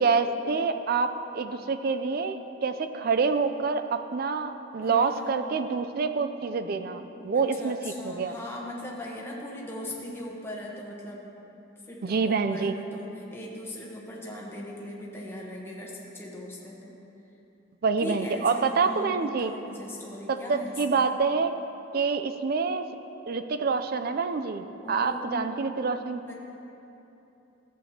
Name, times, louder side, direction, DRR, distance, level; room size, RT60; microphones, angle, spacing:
voice 1, 0.0-8.3 12.0-12.7 17.8-19.5 20.3-21.5 21.9-22.9 23.3-26.2, right 4 dB, 45° right, 9 dB, 0.4 m, -27 dB
voice 2, 4.8-5.4 7.3-11.3 11.8-16.9 18.0-21.1 24.8-25.9 26.2-26.3, left 1 dB, 10° left, -3 dB, 1.0 m, -39 dB
13.5 x 7.7 x 2.8 m, 3.0 s
head